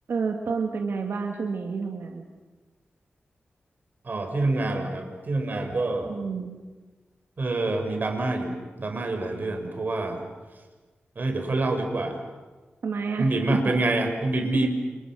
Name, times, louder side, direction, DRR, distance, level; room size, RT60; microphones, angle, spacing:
voice 1, 0.1-2.2 6.0-6.6 12.8-13.3, right 5 dB, 85° right, 2 dB, 2.2 m, -29 dB
voice 2, 4.0-6.1 7.4-10.2 11.2-12.2 13.2-14.7, right 2 dB, 50° right, 4 dB, 6.0 m, -26 dB
29.5 x 29.5 x 6.3 m, 1.3 s
wide cardioid pair, 95°, 4 cm